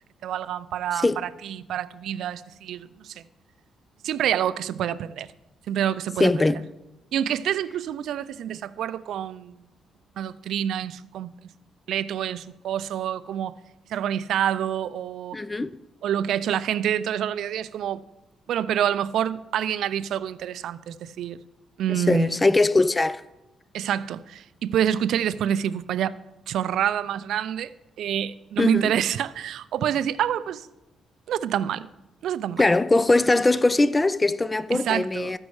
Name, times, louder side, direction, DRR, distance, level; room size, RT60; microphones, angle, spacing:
voice 1, 0.2-3.2 4.0-5.3 5.7-6.4 7.1-9.5 10.2-11.5 11.9-13.5 13.9-15.4 16.0-18.0 18.5-21.4 21.8-22.4 23.7-26.2 26.5-27.7 28.0-30.7 31.3-31.9 32.2-32.6 34.7-35.4, right 10 dB, 75° right, 0.4 m, -27 dB
voice 2, 6.2-6.6 15.3-15.7 21.9-23.2 28.6-28.9 32.6-35.4, left 2 dB, 20° left, 0.3 m, -21 dB
14.0 x 5.3 x 4.7 m
cardioid pair, 90°, 0 cm